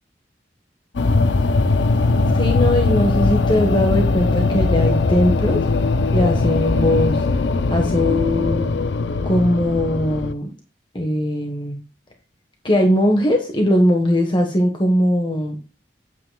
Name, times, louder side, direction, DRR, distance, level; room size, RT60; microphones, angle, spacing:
sound 1, 0.9-10.3, left 3 dB, 75° left, 0.6 m, -19 dB
voice 1, 2.3-5.6 6.1-7.2 7.7-8.7 9.2-10.5 10.9-11.8 12.6-15.6, left 1 dB, 25° left, 2 dB, 1.3 m, -19 dB
9.9 x 9.1 x 2.3 m, 0.32 s
head